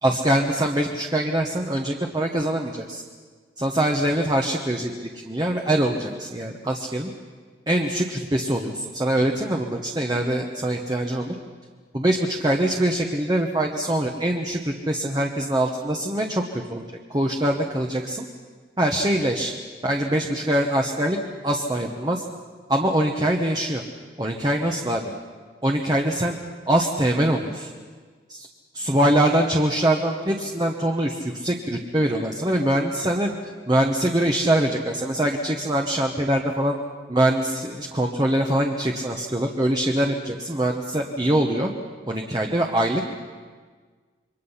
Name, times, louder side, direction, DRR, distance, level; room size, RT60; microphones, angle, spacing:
voice 1, 0.0-3.0 3.6-7.1 7.7-11.3 11.9-18.2 18.8-19.5 19.8-21.2 21.4-22.2 22.7-23.8 24.2-25.1 25.6-26.4 26.7-27.7 28.3-28.5 28.7-33.3 33.7-36.8 37.1-41.7 42.1-43.0, right 1 dB, 25° right, 2 dB, 1.2 m, -23 dB
27.5 x 23.5 x 5.8 m, 1.5 s
head